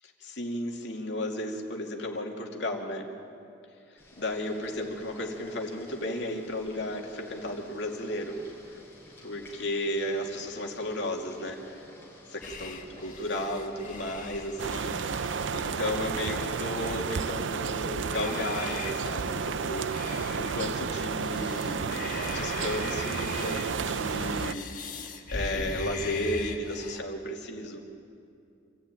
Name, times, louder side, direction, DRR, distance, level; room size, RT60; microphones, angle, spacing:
voice 1, 0.2-3.1 3.9-8.4 9.2-11.9 12.3-25.0 25.3-27.8, left 1 dB, 60° left, 1 dB, 2.6 m, -34 dB
Boiling, 4.0-20.6, left 1 dB, 10° left, 6.0 m, -51 dB
sound 1, 12.4-27.0, left 3 dB, 45° left, 1.4 m, -41 dB
sound 2, 14.6-24.5, right 5 dB, 70° right, 0.5 m, -32 dB
26.5 x 14.5 x 9.1 m, 2.6 s
head